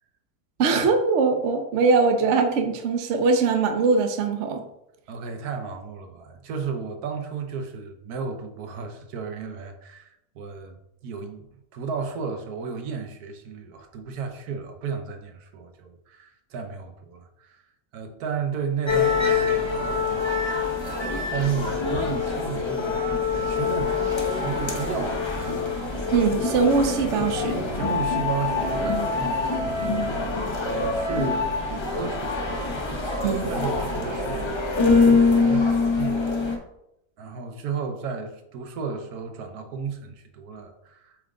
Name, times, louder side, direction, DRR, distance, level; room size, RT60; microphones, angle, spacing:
voice 1, 0.6-4.6 26.1-27.6 33.2-33.5, right 4 dB, 55° right, 6 dB, 1.0 m, -22 dB
voice 2, 5.1-11.5 11.7-17.6 17.9-25.5 27.7-32.6 33.2-36.2 37.2-41.2, right 5 dB, 90° right, 5 dB, 1.3 m, -33 dB
sound 1, 18.9-36.6, left 4 dB, 25° left, 0.7 m, -24 dB
8.0 x 3.6 x 3.7 m, 0.83 s
omnidirectional pair, 1.6 m